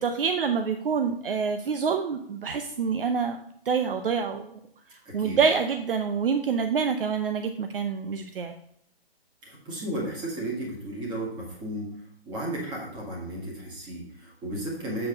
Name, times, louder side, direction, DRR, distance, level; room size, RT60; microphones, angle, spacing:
voice 1, 0.0-3.4 3.7-4.6 5.1-8.5, right 6 dB, 60° right, 7 dB, 0.7 m, -26 dB
voice 2, 5.1-5.4 9.4-11.9 12.3-15.1, right 1 dB, 15° right, -3 dB, 2.0 m, -34 dB
7.7 x 4.4 x 5.0 m, 0.70 s
hypercardioid pair, 155°, 30 cm